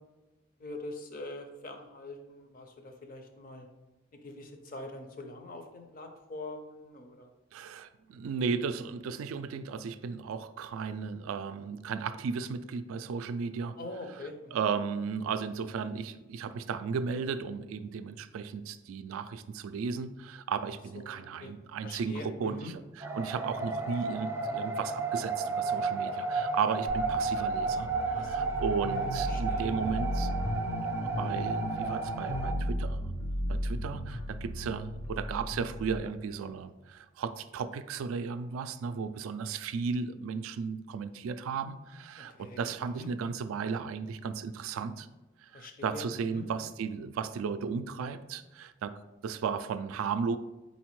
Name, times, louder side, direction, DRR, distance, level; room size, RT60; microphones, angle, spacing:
voice 1, 0.6-3.7 4.2-7.3 13.8-14.6 20.9-21.5 21.8-22.7 28.1-28.6 28.9-29.7 30.2-30.3 42.2-43.1 45.5-46.1 46.3-46.4, left 2 dB, 40° left, 5 dB, 0.5 m, -44 dB
voice 2, 7.5-13.7 14.5-30.3 31.0-33.0 33.5-45.1 45.4-48.9 49.2-50.4, right 5 dB, 80° right, 12 dB, 0.3 m, -35 dB
sound 1, 23.0-32.5, right 4 dB, 10° right, 0.4 m, -32 dB
sound 2, 26.9-36.0, equal, 80° left, 0.7 m, -35 dB
4.2 x 4.1 x 3.1 m, 1.1 s
head